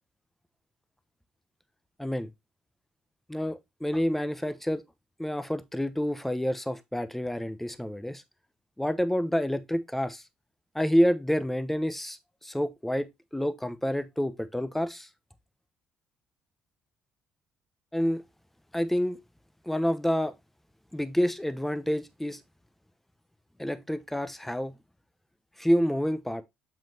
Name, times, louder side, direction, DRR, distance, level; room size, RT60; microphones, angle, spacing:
voice 1, 2.0-2.3 3.3-4.8 5.2-8.2 8.8-10.2 10.7-15.1 17.9-18.2 18.7-19.2 19.7-20.3 20.9-22.4 23.6-24.7 25.6-26.4, equal, 5° left, 0.9 m, -28 dB
7.1 x 5.9 x 2.8 m
hypercardioid pair, 50°, 4 cm